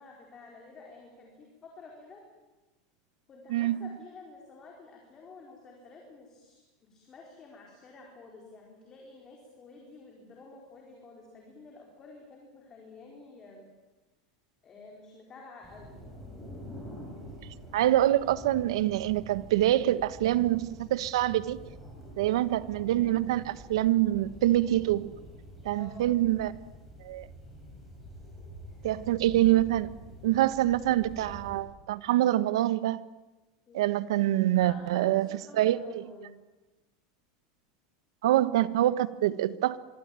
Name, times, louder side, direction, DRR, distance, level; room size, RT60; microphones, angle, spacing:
voice 1, 0.0-2.3 3.3-13.7 14.6-16.0 25.7-26.2 33.7-33.8 34.6-36.3, left 3 dB, 20° left, 4.4 m, -50 dB
voice 2, 3.5-4.0 17.7-21.6 22.2-25.1 25.6-26.5 27.0-27.3 28.8-29.9 30.2-33.0 33.7-35.3 35.5-36.0 38.2-39.8, right 14 dB, 80° right, 1.3 m, -25 dB
sound 1, 15.6-31.6, equal, ahead, 7.4 m, -47 dB
25.5 x 23.5 x 9.2 m
supercardioid pair, 175°, 3 cm